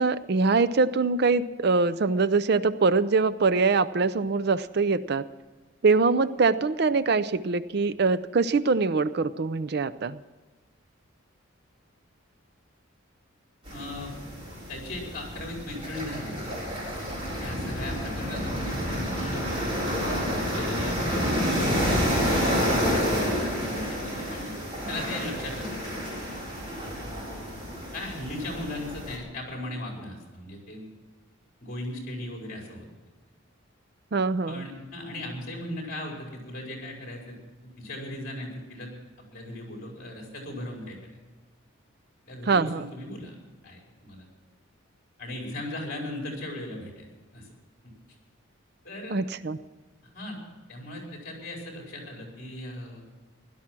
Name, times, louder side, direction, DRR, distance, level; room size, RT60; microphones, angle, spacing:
voice 1, 0.0-5.3 5.8-10.2 34.1-34.7 42.5-42.8 49.1-49.6, right 4 dB, 50° right, 14 dB, 0.5 m, -23 dB
voice 2, 13.7-14.1 14.7-16.5 17.4-19.5 20.0-20.3 20.6-21.0 21.5-24.5 24.9-26.0 27.9-30.8 31.6-32.9 34.5-37.4 37.6-38.9 39.3-41.0 42.3-43.3 43.6-44.3 45.2-47.5 48.8-49.2 50.1-50.4 50.7-53.0, left 1 dB, 45° left, 0 dB, 4.7 m, -38 dB
sound 1, 13.7-29.2, equal, 30° right, 4.3 m, -29 dB
17.0 x 12.0 x 6.0 m, 1.3 s
head